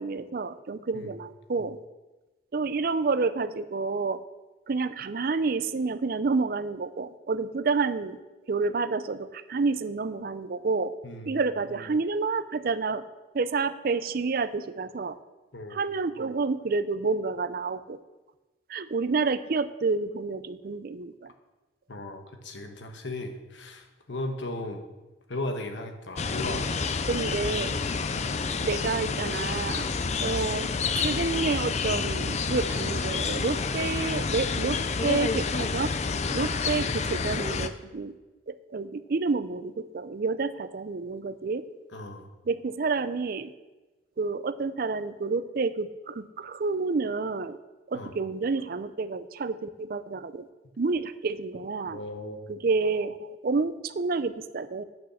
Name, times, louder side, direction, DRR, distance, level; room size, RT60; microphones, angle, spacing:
voice 1, 0.0-1.8 2.5-4.2 4.7-8.2 8.5-10.9 11.3-13.0 13.3-15.2 15.7-18.0 18.7-21.3 27.1-27.8 28.5-29.9 30.2-35.9 36.3-38.2 38.5-41.6 42.5-43.5 44.2-47.6 47.9-50.5 50.8-52.0 52.5-54.8, right 4 dB, 55° right, 13 dB, 0.5 m, -29 dB
voice 2, 11.0-11.4 15.5-15.8 21.9-24.8 25.3-26.7 28.1-28.4 36.4-36.7 41.9-42.3 47.9-48.1 51.9-52.5, left 2 dB, 80° left, 5 dB, 1.2 m, -36 dB
sound 1, 26.2-37.7, left 4 dB, 40° left, 0.5 m, -29 dB
8.7 x 6.6 x 7.0 m, 1.1 s
head